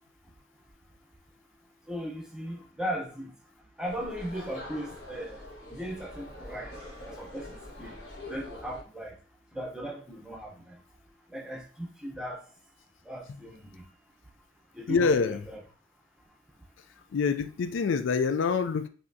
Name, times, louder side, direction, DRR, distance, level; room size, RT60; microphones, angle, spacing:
voice 1, 1.9-3.3 3.8-6.8 7.0-9.2 9.5-10.8 11.3-12.5 13.0-13.8 14.7-15.7, equal, 5° right, 0.7 m, -38 dB
sound 1, 3.8-8.8, left 1 dB, 60° left, 1.5 m, -44 dB
voice 2, 14.9-15.4 17.1-18.9, left 5 dB, 90° left, 0.4 m, -26 dB
5.6 x 2.8 x 2.6 m
head